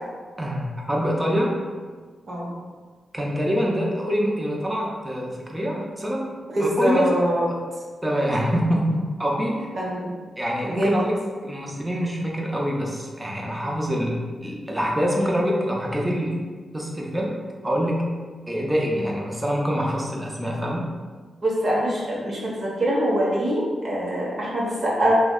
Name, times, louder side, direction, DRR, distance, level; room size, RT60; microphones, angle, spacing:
voice 1, 0.4-1.6 3.1-6.2 6.6-7.1 8.0-9.7 10.4-16.4 16.7-17.4 17.6-18.1 18.5-20.9, equal, 10° right, -2 dB, 0.5 m, -25 dB
voice 2, 6.5-7.4 9.7-10.1 10.6-11.0 21.4-25.1, right 1 dB, 40° right, -5 dB, 0.7 m, -24 dB
3.2 x 2.0 x 3.6 m, 1.5 s
wide cardioid pair, 145°, 0 cm